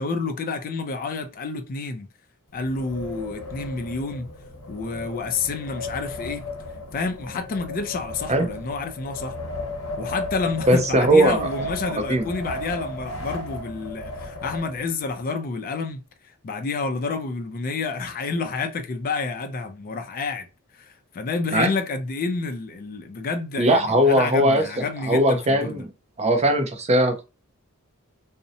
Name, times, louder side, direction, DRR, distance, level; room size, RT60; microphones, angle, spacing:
voice 1, 0.0-2.1 2.5-4.3 4.7-6.4 6.9-9.4 10.0-16.0 16.4-20.5 20.7-25.8, left 4 dB, 40° left, 0.4 m, -29 dB
Wind, 2.5-15.1, left 2 dB, 85° left, 0.9 m, -35 dB
voice 2, 10.7-11.5 12.1-12.3 21.5-21.7 23.6-24.6 25.1-25.9 26.2-27.2, right 1 dB, 30° right, 0.5 m, -19 dB
2.6 x 2.0 x 2.6 m
head